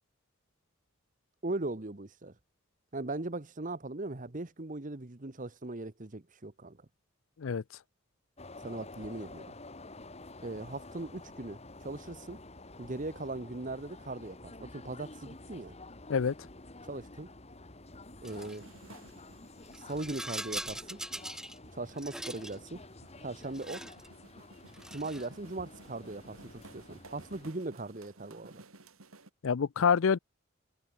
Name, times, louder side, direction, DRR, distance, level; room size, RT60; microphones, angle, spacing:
voice 1, 1.4-2.3 2.9-6.8 8.6-9.5 10.4-12.4 12.8-15.8 16.9-17.3 18.2-18.7 19.8-21.0 21.7-22.8 23.2-23.9 24.9-28.6, right 2 dB, 40° right, 1.2 m, -39 dB
sound 1, 8.4-27.5, left 2 dB, 30° left, 2.4 m, -50 dB
Rattle, 18.2-18.6 19.7-21.6 21.9-22.6 23.4-24.1 24.7-25.3, right 1 dB, 5° right, 0.8 m, -42 dB
sound 2, 18.3-29.3, right 2 dB, 90° right, 3.1 m, -56 dB
voice 2, 29.4-30.2, left 6 dB, 70° left, 0.5 m, -26 dB
head